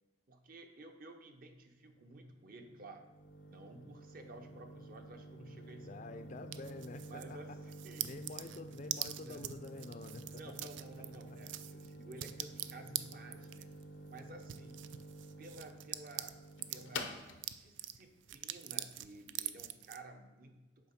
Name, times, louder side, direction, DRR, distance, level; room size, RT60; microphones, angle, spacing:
voice 1, 0.3-3.1 3.4-6.2 7.0-8.2 9.2-9.5 10.4-13.7 14.1-14.8 15.4-16.4 16.7-17.2 17.5-20.9, right 2 dB, 50° right, 5 dB, 0.7 m, -53 dB
sound 1, 1.9-19.5, equal, 90° left, 0.8 m, -50 dB
voice 2, 5.8-7.4 8.0-10.7, left 3 dB, 40° left, 9 dB, 0.4 m, -48 dB
sound 2, 6.5-7.3 7.7-16.8 17.2-20.0, right 13 dB, 75° right, 0.3 m, -44 dB
6.8 x 4.6 x 5.8 m, 1.1 s
head